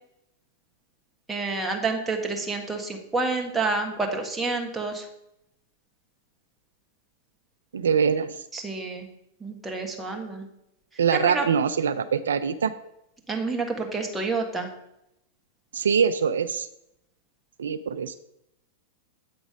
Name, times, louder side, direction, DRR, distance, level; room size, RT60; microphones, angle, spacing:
voice 1, 1.3-5.1 8.5-9.1 9.4-10.5 11.1-11.5 13.3-14.7, right 3 dB, 10° right, 1 dB, 1.5 m, -28 dB
voice 2, 7.7-8.4 11.0-12.7 15.7-16.7 17.6-18.1, right 6 dB, 80° right, 11 dB, 0.4 m, -23 dB
8.1 x 3.9 x 5.0 m, 0.82 s
hypercardioid pair, 110°, 0 cm